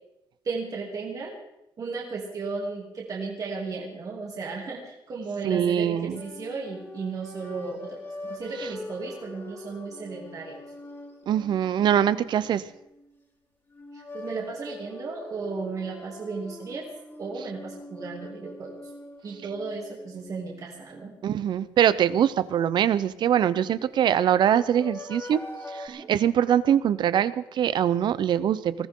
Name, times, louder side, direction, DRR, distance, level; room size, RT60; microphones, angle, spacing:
voice 1, 0.4-1.3 1.8-10.6 13.9-16.9 17.2-18.8 19.2-21.1 25.9-26.1, right 4 dB, 45° right, -2 dB, 2.8 m, -35 dB
voice 2, 5.4-6.2 11.3-12.6 21.2-25.4 25.7-28.9, right 10 dB, 60° right, 16 dB, 0.7 m, -23 dB
sound 1, 6.1-13.2 13.7-21.5 23.2-25.9, left 2 dB, 30° left, 3.7 m, -43 dB
21.0 x 14.5 x 3.8 m, 0.86 s
cardioid pair, 120°, 9 cm